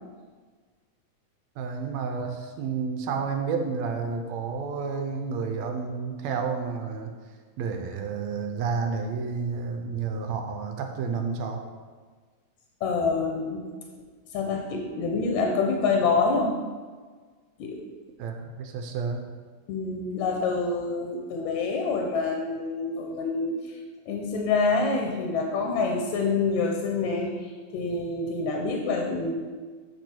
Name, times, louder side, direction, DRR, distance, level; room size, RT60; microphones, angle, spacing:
voice 1, 1.6-7.1 7.6-11.6 18.2-19.2, right 5 dB, 75° right, 4 dB, 1.9 m, -30 dB
voice 2, 12.8-13.6 14.3-16.5 17.6-17.8 19.7-23.8 24.1-29.3, left 4 dB, 80° left, 1 dB, 2.2 m, -26 dB
8.2 x 6.2 x 4.4 m, 1.5 s
omnidirectional pair, 3.3 m